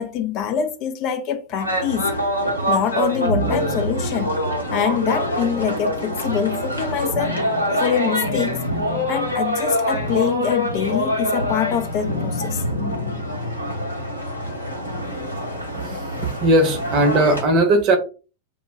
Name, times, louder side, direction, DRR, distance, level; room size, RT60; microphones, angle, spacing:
voice 1, 0.0-2.1 2.7-4.4 4.7-7.4 7.8-8.6 9.1-12.6, left 8 dB, 40° left, 0.4 m, -24 dB
sound 1, 1.6-17.4, equal, 85° left, 0.8 m, -25 dB
voice 2, 15.8-18.0, right 1 dB, 40° right, 0.7 m, -18 dB
2.1 x 2.1 x 3.5 m
figure-of-eight pair, 90°, 0 cm